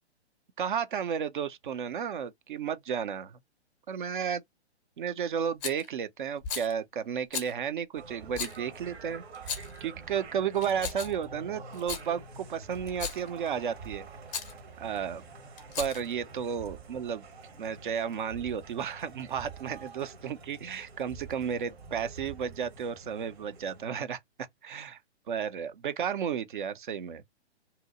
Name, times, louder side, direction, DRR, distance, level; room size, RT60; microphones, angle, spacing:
voice 1, 0.6-3.4 3.9-4.4 5.0-14.1 14.8-15.2 15.8-17.2 17.6-25.0 25.3-27.2, right 7 dB, 50° right, 0.4 m, -33 dB
Rattle, 5.6-5.9 6.4-6.7 7.3-7.5 8.3-8.6 9.3-9.8 10.6-11.2 11.7-12.1 12.9-13.3 14.3-14.5 15.6-16.1, left 7 dB, 15° left, 0.5 m, -36 dB
sound 1, 8.0-23.9, right 4 dB, 65° right, 0.9 m, -47 dB
2.8 x 2.0 x 3.9 m
figure-of-eight pair, 125°, 34 cm